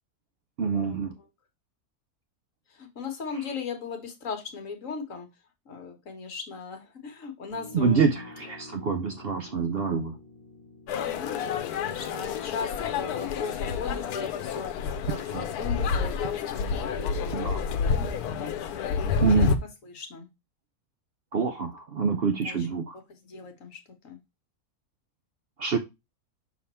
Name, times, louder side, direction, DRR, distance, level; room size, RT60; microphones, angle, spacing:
voice 1, 0.6-1.1 7.7-10.1 15.3-15.4 17.3-17.6 19.2-19.5 21.3-23.0 25.6-25.8, right 5 dB, 60° right, 0.6 m, -26 dB
voice 2, 2.8-5.3 5.7-8.3 11.1-14.7 15.0-19.5 19.9-20.3 22.4-22.7 23.1-23.8 24.0-24.2, left 5 dB, 60° left, 1.6 m, -38 dB
Piano, 7.5-14.4, left 5 dB, 30° left, 1.0 m, -47 dB
sound 1, 10.9-19.6, left 6 dB, 90° left, 1.2 m, -29 dB
6.1 x 3.6 x 4.2 m
omnidirectional pair, 1.6 m